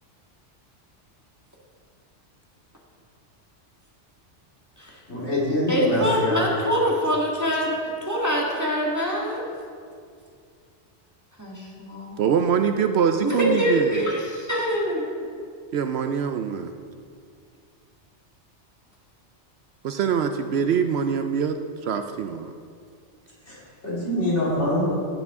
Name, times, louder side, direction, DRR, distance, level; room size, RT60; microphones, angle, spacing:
voice 1, 5.1-6.4 23.5-25.0, left 1 dB, 70° left, -7 dB, 3.3 m, -25 dB
voice 2, 5.7-7.8 8.0-9.5 11.4-12.2 13.2-15.1, equal, 15° right, -4 dB, 1.7 m, -24 dB
voice 3, 12.2-14.1 15.7-16.7 19.8-21.6 21.8-22.5, right 7 dB, 65° right, 7 dB, 0.8 m, -23 dB
15.5 x 7.2 x 3.6 m, 2.2 s
omnidirectional pair, 1.2 m